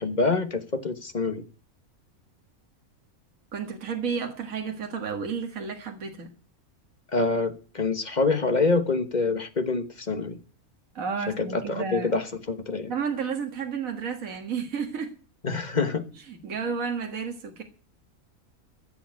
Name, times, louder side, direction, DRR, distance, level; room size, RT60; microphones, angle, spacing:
voice 1, 0.0-1.4 7.1-10.4 11.3-12.9 15.4-16.1, left 3 dB, 30° left, 1.3 m, -26 dB
voice 2, 3.5-6.3 10.9-12.2 12.9-15.1 16.3-17.6, right 6 dB, 65° right, 2.1 m, -31 dB
15.5 x 7.3 x 9.4 m
omnidirectional pair, 1.5 m